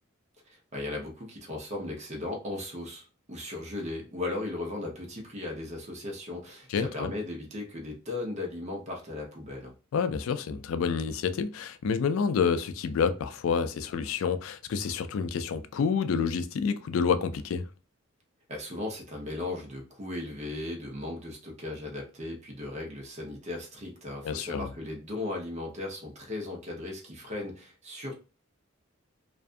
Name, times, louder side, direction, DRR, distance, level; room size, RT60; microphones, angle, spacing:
voice 1, 0.5-9.7 18.5-28.2, left 2 dB, 35° right, 0.8 m, -37 dB
voice 2, 6.7-7.1 9.9-17.6 24.2-24.7, left 6 dB, 75° left, 0.3 m, -28 dB
2.5 x 2.3 x 2.4 m
head